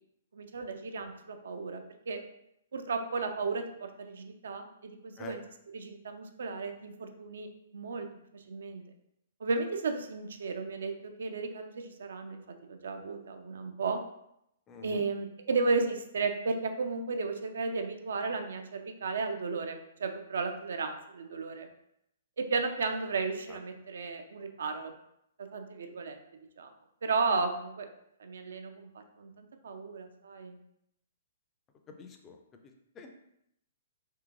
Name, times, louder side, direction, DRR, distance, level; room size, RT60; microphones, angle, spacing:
voice 1, 0.3-2.2 2.7-5.4 5.7-8.1 8.3-8.8 9.4-12.4 12.7-14.0 14.8-21.7 22.4-24.9 25.4-26.2 26.6-26.7 27.0-27.9 28.2-30.6, right 4 dB, 60° right, 6 dB, 0.3 m, -34 dB
voice 2, 14.7-15.1 23.5-23.6 31.9-33.1, left 5 dB, 20° left, 4 dB, 0.4 m, -47 dB
3.7 x 2.8 x 2.4 m, 0.78 s
figure-of-eight pair, 115°, 0 cm